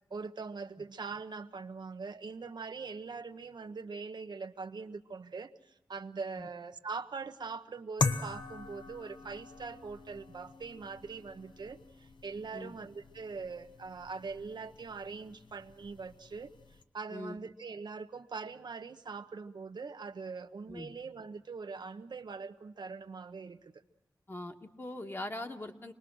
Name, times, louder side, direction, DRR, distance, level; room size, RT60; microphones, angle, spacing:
voice 1, 0.1-16.5 16.9-23.7, right 4 dB, 70° right, 8 dB, 1.0 m, -42 dB
sound 1, 8.0-16.8, left 4 dB, 75° left, 1.1 m, -41 dB
voice 2, 24.3-25.9, left 1 dB, 30° left, 5 dB, 1.6 m, -41 dB
26.0 x 20.0 x 6.2 m, 0.98 s
wide cardioid pair, 85°, 8 cm